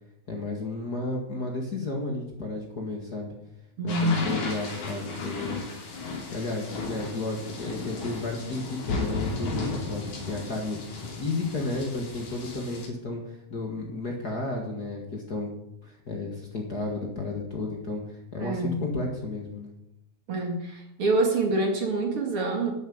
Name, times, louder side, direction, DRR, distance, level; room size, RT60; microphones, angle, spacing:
voice 1, 0.3-3.3 3.8-5.7 6.3-10.8 11.2-13.2 13.5-15.5 15.8-19.7, left 2 dB, 35° left, 1 dB, 2.2 m, -33 dB
voice 2, 3.8-4.3 18.4-18.8 20.3-22.7, right 2 dB, 50° right, 2 dB, 2.9 m, -26 dB
sound 1, 3.9-12.9, left 3 dB, 80° left, 4.5 m, -35 dB
12.0 x 8.2 x 8.8 m, 0.82 s
omnidirectional pair, 3.4 m